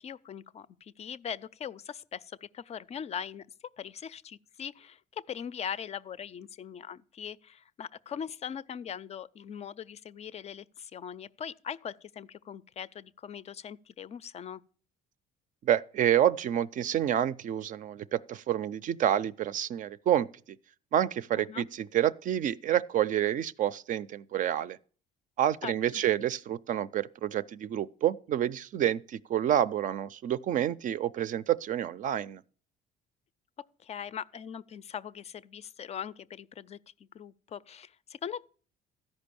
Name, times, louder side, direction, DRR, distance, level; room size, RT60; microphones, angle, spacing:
voice 1, 0.0-3.5 3.8-14.6 21.4-21.7 25.6-26.0 33.8-38.5, left 8 dB, 40° left, 0.4 m, -41 dB
voice 2, 15.6-20.3 20.9-24.8 25.4-32.4, right 11 dB, 50° right, 0.4 m, -28 dB
13.5 x 5.3 x 6.9 m
cardioid pair, 110°, 17 cm